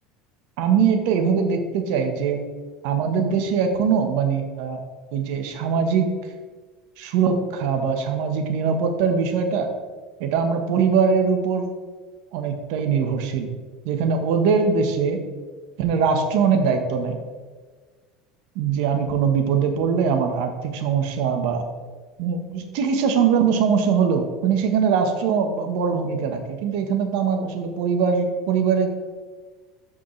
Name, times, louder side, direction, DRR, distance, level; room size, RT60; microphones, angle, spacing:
voice 1, 0.6-2.4 2.8-4.8 5.1-6.1 7.0-9.7 10.2-11.7 12.3-13.5 13.8-15.2 15.8-17.2 18.5-21.6 22.2-28.9, right 6 dB, 70° right, 5 dB, 1.2 m, -22 dB
13.0 x 5.1 x 3.2 m, 1.4 s
supercardioid pair, 135°, 0 cm